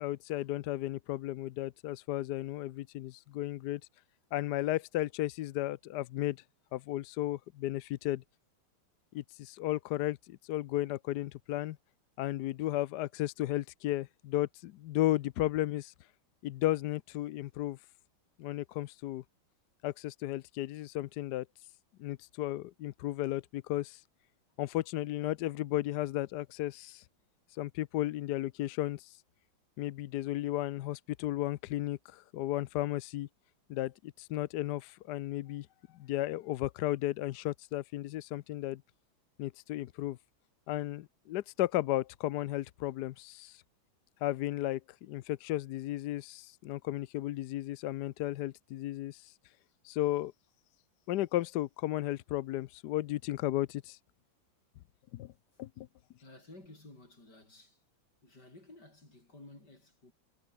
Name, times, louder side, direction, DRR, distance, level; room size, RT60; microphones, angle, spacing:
voice 1, 0.0-3.8 4.3-6.4 6.7-8.2 9.1-11.8 12.2-15.9 16.4-17.8 18.4-19.2 19.8-21.5 22.0-24.0 24.6-27.0 27.5-29.2 29.8-33.3 33.7-35.7 35.9-38.8 39.4-40.2 40.7-43.6 44.2-49.3 49.8-50.3 51.1-54.0 55.1-55.3 55.6-55.9, left 15 dB, 70° left, 1.0 m, -34 dB
voice 2, 56.2-57.8 58.2-60.1, left 2 dB, 50° left, 8.4 m, -54 dB
omnidirectional pair, 2.2 m